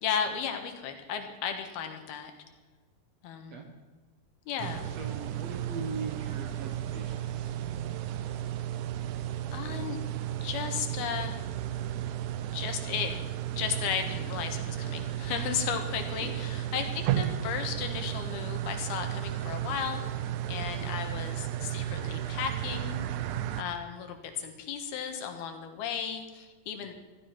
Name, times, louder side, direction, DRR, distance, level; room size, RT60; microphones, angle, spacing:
voice 1, 0.0-2.3 3.2-3.6 4.5-4.9 9.5-10.0 10.4-11.4 12.5-13.2 13.6-23.0 23.6-26.9, left 7 dB, 80° left, 6 dB, 3.3 m, -35 dB
sound 1, 4.6-23.6, right 11 dB, 80° right, 1.8 m, -34 dB
voice 2, 4.8-7.5 16.1-16.4 26.8-26.9, right 4 dB, 60° right, 4 dB, 1.9 m, -41 dB
15.5 x 12.0 x 5.9 m, 1.3 s
omnidirectional pair, 4.3 m